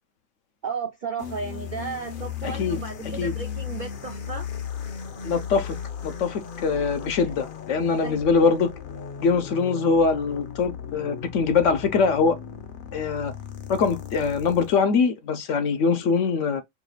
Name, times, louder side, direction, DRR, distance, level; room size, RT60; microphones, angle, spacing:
voice 1, 0.6-4.5 8.0-8.2, right 5 dB, 60° right, 0.5 m, -34 dB
sound 1, 1.2-14.8, left 8 dB, 55° left, 0.6 m, -36 dB
voice 2, 2.4-2.8 3.2-3.3 5.2-5.8 6.0-8.7 9.2-12.4 12.9-13.3 13.7-16.6, left 5 dB, 70° left, 0.9 m, -23 dB
4.8 x 2.3 x 3.1 m
omnidirectional pair, 1.4 m